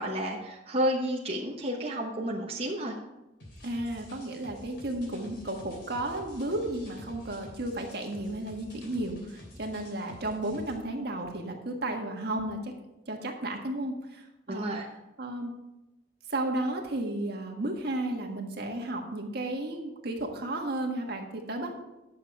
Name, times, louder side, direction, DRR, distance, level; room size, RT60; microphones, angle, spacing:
voice 1, 0.0-2.9 14.5-14.9, equal, 35° right, -2 dB, 1.1 m, -31 dB
sound 1, 3.4-10.8, left 1 dB, 75° left, 3.2 m, -49 dB
voice 2, 3.6-12.7 13.1-14.7 15.2-15.5 16.3-21.7, right 1 dB, 60° right, 2 dB, 1.6 m, -33 dB
10.0 x 6.8 x 4.8 m, 0.96 s
head